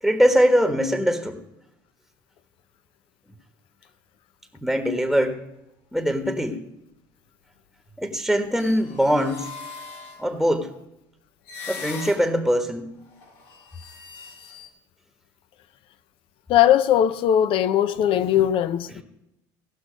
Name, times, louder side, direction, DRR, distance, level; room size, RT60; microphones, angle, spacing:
voice 1, 0.0-1.4 4.5-5.4 5.9-6.6 8.0-9.5 10.2-10.7 11.7-12.9, equal, ahead, 1.3 m, -22 dB
sound 1, 8.4-10.5 11.5-12.5 13.0-14.7, left 4 dB, 75° left, 2.2 m, -41 dB
voice 2, 16.5-19.0, left 11 dB, 60° left, 0.7 m, -19 dB
17.0 x 6.0 x 5.1 m
supercardioid pair, 90°, 10 cm